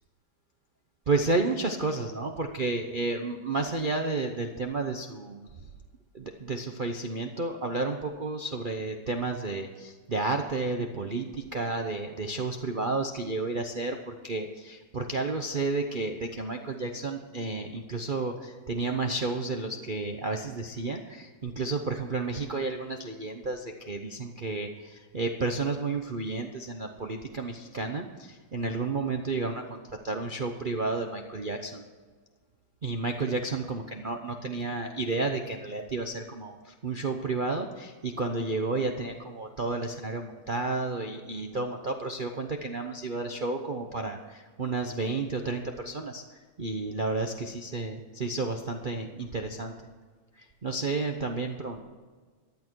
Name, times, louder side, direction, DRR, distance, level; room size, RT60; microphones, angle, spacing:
voice 1, 1.1-5.5 6.1-31.8 32.8-46.2 46.6-49.7 50.3-51.8, right 3 dB, 45° right, 4 dB, 0.6 m, -31 dB
15.0 x 11.0 x 4.6 m, 1.5 s
omnidirectional pair, 2.2 m